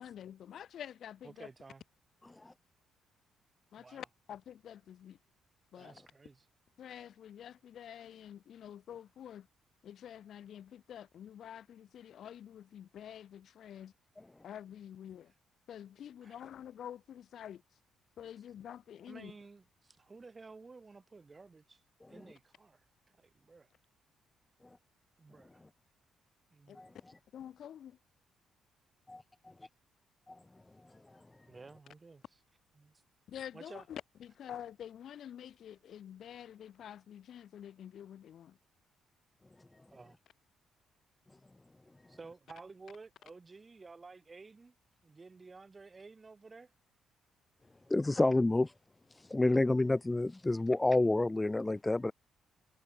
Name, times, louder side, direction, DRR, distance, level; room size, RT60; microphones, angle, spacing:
voice 1, 0.0-1.5 3.7-5.2 5.7-5.9 6.8-9.5 9.8-13.9 14.4-15.3 15.7-17.6 18.2-19.3 26.7-26.8 27.3-28.0 33.3-38.6, left 10 dB, 65° left, 1.4 m, -48 dB
voice 2, 1.2-1.8 3.8-4.1 5.8-6.5 16.2-16.4 19.1-21.8 22.1-22.8 23.1-23.7 25.2-25.6 26.5-26.9 31.5-32.2 32.8-33.0 33.5-33.8 39.9-40.2 42.1-44.7 45.0-46.7, right 4 dB, 30° right, 6.4 m, -53 dB
voice 3, 47.9-48.7 49.2-52.1, left 2 dB, 15° left, 1.0 m, -29 dB
cardioid pair, 90°, 0 cm